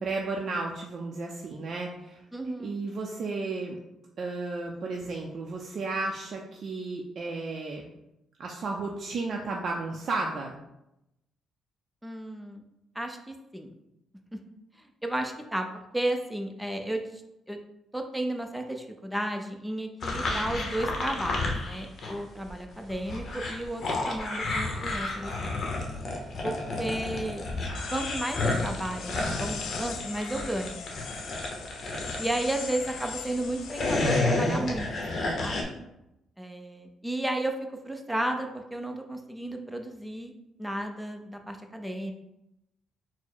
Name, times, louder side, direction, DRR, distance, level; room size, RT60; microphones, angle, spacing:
voice 1, 0.0-2.2 2.6-3.8 4.2-7.8 8.4-10.5, right 3 dB, 55° right, 0 dB, 0.5 m, -33 dB
voice 2, 2.3-2.8 12.0-12.6 13.0-13.7 14.3-14.4 15.0-15.7 15.9-17.0 17.5-17.6 17.9-25.6 26.4-27.4 27.9-30.8 32.2-34.9 35.1-35.8 36.4-37.5 37.8-40.3 40.6-42.1, right 1 dB, 5° right, 4 dB, 0.5 m, -33 dB
sound 1, 20.0-22.2 22.5-33.1 33.5-35.6, left 2 dB, 50° left, 0.8 m, -31 dB
sound 2, 27.7-34.2, left 6 dB, 80° left, 0.5 m, -40 dB
4.3 x 2.1 x 4.4 m, 0.88 s
cardioid pair, 90°, 0 cm